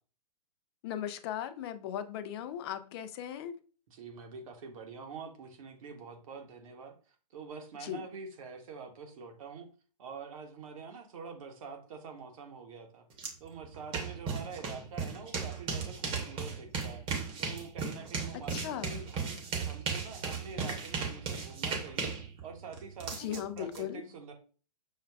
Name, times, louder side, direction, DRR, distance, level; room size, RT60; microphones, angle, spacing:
voice 1, 0.8-3.6 7.8-8.1 18.3-19.1 23.2-24.1, left 10 dB, 40° left, 11 dB, 0.4 m, -38 dB
voice 2, 3.9-6.9 7.3-9.7 10.0-13.0 13.4-17.0 17.4-19.4 19.6-22.1 22.4-24.3, right 5 dB, 55° right, 4 dB, 0.9 m, -46 dB
sound 1, 13.2-13.3 13.6-23.8, right 5 dB, 25° right, 0.9 m, -36 dB
6.3 x 2.2 x 2.3 m, 0.38 s
figure-of-eight pair, 120°, 21 cm